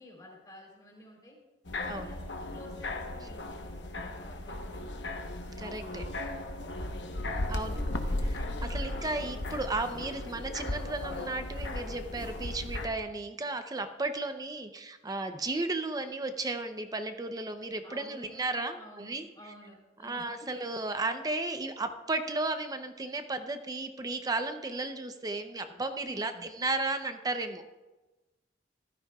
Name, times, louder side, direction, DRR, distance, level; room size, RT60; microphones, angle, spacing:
voice 1, 0.0-1.4 1.8-4.8 5.8-7.1 17.8-18.5 18.7-20.3 26.0-26.5, left 1 dB, 25° left, -2 dB, 3.6 m, -52 dB
sound 1, 1.7-12.9, left 1 dB, 80° left, 1.0 m, -36 dB
voice 2, 5.6-6.1 7.5-7.8 8.2-19.3 20.0-27.7, right 2 dB, 20° right, 8 dB, 0.6 m, -34 dB
15.0 x 12.5 x 2.3 m, 1.1 s
head